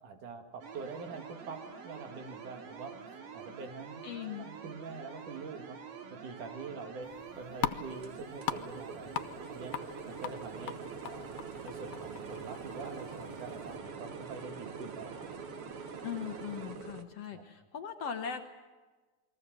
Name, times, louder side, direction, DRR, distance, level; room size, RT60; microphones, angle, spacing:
voice 1, 0.0-3.0 3.3-5.8 6.1-7.1 7.4-9.1 9.5-9.7 10.1-10.8 11.0-11.3 11.6-15.5 17.2-17.4, right 4 dB, 70° right, 5 dB, 3.7 m, -45 dB
sound 1, 0.6-16.8, right 6 dB, 85° right, 3.8 m, -48 dB
voice 2, 4.0-4.5 16.0-18.5, left 7 dB, 60° left, 6 dB, 1.9 m, -39 dB
sound 2, 7.0-13.8, left 11 dB, 90° left, 2.6 m, -41 dB
sound 3, 7.9-17.0, right 5 dB, 55° right, 2.1 m, -46 dB
29.0 x 21.5 x 7.6 m, 1.3 s
omnidirectional pair, 3.7 m